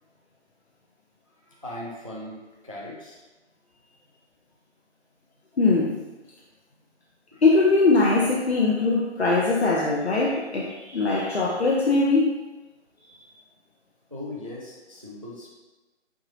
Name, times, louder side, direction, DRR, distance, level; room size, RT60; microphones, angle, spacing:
voice 1, 1.5-2.4 2.6-3.2 7.3-7.4 14.1-15.5, left 1 dB, 30° right, -4 dB, 0.4 m, -38 dB
voice 2, 5.6-5.9 7.4-12.3, left 3 dB, 60° left, -3 dB, 0.7 m, -21 dB
4.8 x 3.9 x 2.6 m, 1.1 s
figure-of-eight pair, 160°, 36 cm